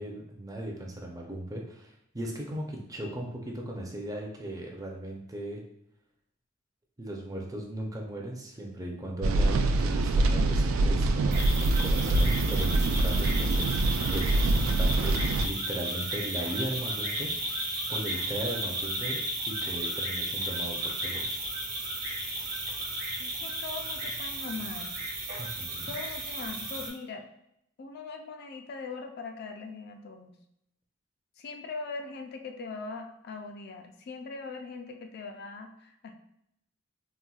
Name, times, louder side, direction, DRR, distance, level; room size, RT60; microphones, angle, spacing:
voice 1, 0.0-5.7 7.0-13.8 14.1-21.3 25.4-25.9, right 1 dB, 15° right, 0 dB, 0.5 m, -37 dB
sound 1, 9.2-15.5, right 2 dB, 80° right, 0.3 m, -25 dB
sound 2, 11.3-26.9, right 1 dB, 45° right, 0.9 m, -34 dB
voice 2, 23.2-24.9 25.9-27.2 27.8-30.4 31.4-36.1, left 4 dB, 50° left, 5 dB, 0.3 m, -40 dB
4.0 x 2.2 x 2.3 m, 0.76 s
head